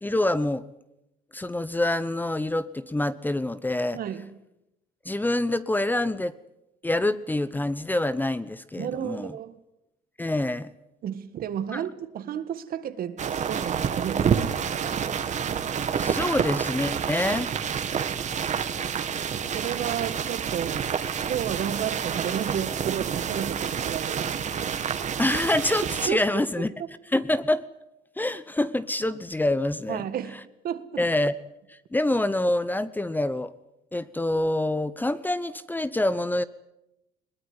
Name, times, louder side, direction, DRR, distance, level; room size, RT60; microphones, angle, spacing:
voice 1, 0.0-0.6 1.3-4.0 5.0-6.4 6.8-9.3 10.2-10.7 11.7-11.8 16.0-17.5 25.2-26.7 27.1-27.7 28.2-30.0 31.0-31.3 31.7-33.5 33.9-36.4, left 1 dB, 10° left, 0.9 m, -26 dB
voice 2, 3.9-4.3 8.8-9.6 11.0-15.0 19.5-21.0 21.3-24.4 26.1-26.3 29.9-30.4 30.6-31.0, right 9 dB, 60° right, 1.9 m, -32 dB
sound 1, 13.2-26.1, right 7 dB, 45° right, 2.0 m, -28 dB
21.5 x 19.5 x 9.8 m
cardioid pair, 110°, 17 cm